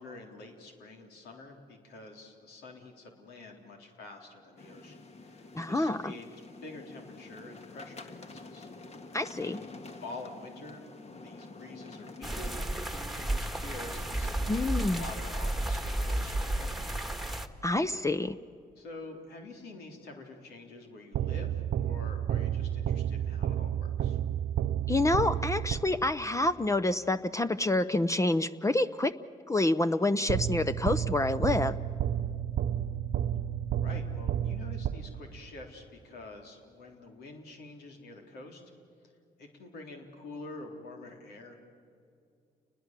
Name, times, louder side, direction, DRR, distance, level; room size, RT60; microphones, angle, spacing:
voice 1, 0.0-6.3 6.6-9.1 9.4-9.7 10.0-10.8 11.2-16.9 18.8-24.2 33.8-38.6 39.4-41.6, left 2 dB, 85° left, 2 dB, 3.6 m, -47 dB
sound 1, 4.6-12.6, left 3 dB, 40° left, 1.9 m, -48 dB
voice 2, 5.5-6.1 9.1-9.6 14.5-15.0 17.6-18.4 24.9-29.1 29.5-31.8, left 2 dB, 20° left, 12 dB, 0.7 m, -27 dB
sound 2, 12.2-17.5, right 1 dB, ahead, 1.7 m, -32 dB
sound 3, 21.1-26.3 30.3-35.5, right 10 dB, 70° right, 0.7 m, -31 dB
29.5 x 20.5 x 7.5 m, 2.5 s
cardioid pair, 70°, 16 cm